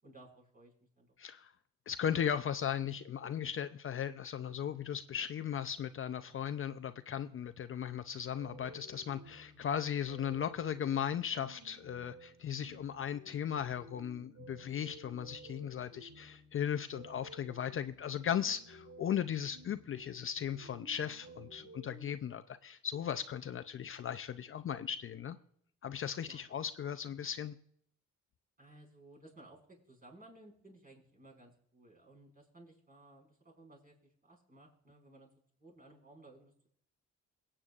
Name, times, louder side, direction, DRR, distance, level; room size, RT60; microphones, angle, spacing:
voice 1, 0.0-1.1 9.5-9.7 21.6-21.7 26.3-26.5 28.6-35.3 35.6-36.7, right 2 dB, 30° right, 0 dB, 5.4 m, -58 dB
voice 2, 1.2-1.5 1.9-25.4 25.8-27.6, left 9 dB, 45° left, 10 dB, 0.5 m, -37 dB
sound 1, 8.3-22.1, right 1 dB, 65° right, 3.1 m, -55 dB
22.0 x 8.8 x 2.5 m, 0.65 s
cardioid pair, 90°, 30 cm